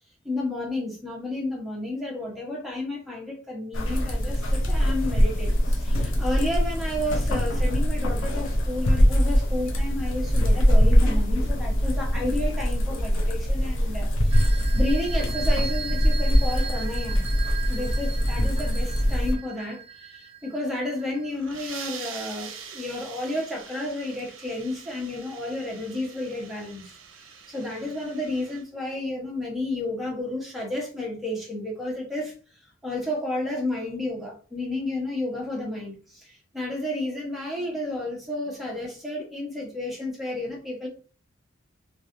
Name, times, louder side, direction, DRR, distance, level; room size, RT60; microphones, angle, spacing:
voice 1, 0.2-17.3 17.7-32.3 32.8-40.9, left 1 dB, ahead, 0.9 m, -32 dB
sound 1, 3.7-19.3, equal, 70° left, 0.7 m, -23 dB
sound 2, 14.3-21.3, right 7 dB, 30° right, 0.3 m, -39 dB
sound 3, 21.2-28.6, right 7 dB, 80° right, 0.5 m, -43 dB
3.1 x 2.7 x 2.6 m
head